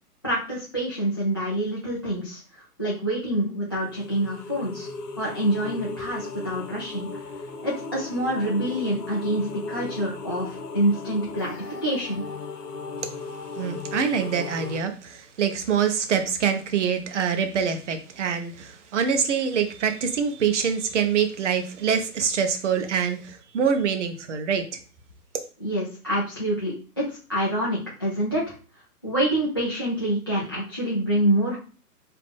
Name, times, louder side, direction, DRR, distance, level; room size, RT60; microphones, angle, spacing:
voice 1, 0.2-4.9 5.2-7.1 7.6-12.2 25.6-28.5 29.0-31.6, right 1 dB, 15° left, -6 dB, 0.4 m, -26 dB
sound 1, 3.8-14.8, left 3 dB, 75° left, 1.0 m, -36 dB
voice 2, 13.6-24.6, right 7 dB, 50° right, 7 dB, 1.0 m, -25 dB
4.9 x 2.9 x 3.6 m, 0.37 s
figure-of-eight pair, 130°, 48 cm